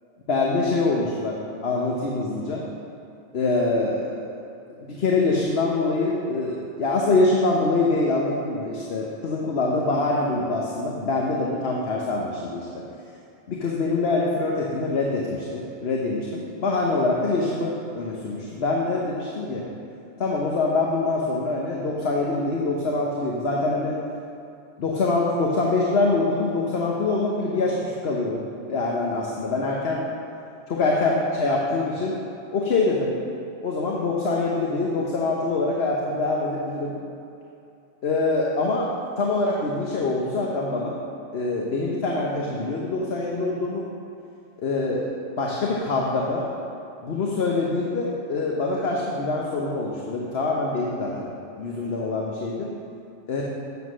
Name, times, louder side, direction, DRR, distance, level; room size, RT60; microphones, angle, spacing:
voice 1, 0.3-2.6 3.3-4.3 4.8-12.8 13.5-19.6 20.2-23.9 24.8-30.0 30.7-32.1 32.5-33.1 33.6-36.9 38.0-38.9 39.2-41.0 41.3-43.9 44.6-45.1 45.4-46.5 47.0-51.3 51.5-52.7 53.3-53.4, left 3 dB, 65° left, -2 dB, 1.2 m, -24 dB
8.1 x 7.5 x 6.2 m, 2.6 s
omnidirectional pair, 1.2 m